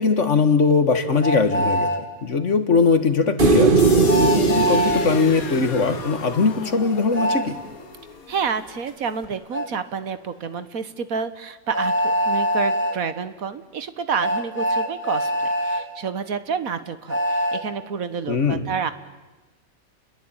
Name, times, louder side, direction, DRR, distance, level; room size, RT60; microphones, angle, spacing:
voice 1, 0.0-1.9 2.2-3.9 4.2-7.6 18.3-18.6, left 4 dB, 60° left, 9 dB, 2.1 m, -20 dB
Train, 1.2-2.0 4.1-5.1 7.1-7.5 9.5-9.7 11.7-13.0 14.2-15.8 17.1-17.6, equal, 10° left, 3.3 m, -23 dB
sound 1, 3.4-6.7 9.2-9.3, right 3 dB, 40° right, 2.1 m, -19 dB
sound 2, 3.8-9.7, left 6 dB, 90° left, 2.0 m, -37 dB
voice 2, 8.3-18.9, right 6 dB, 80° right, 12 dB, 1.8 m, -29 dB
29.5 x 21.0 x 8.9 m, 1.2 s
omnidirectional pair, 1.5 m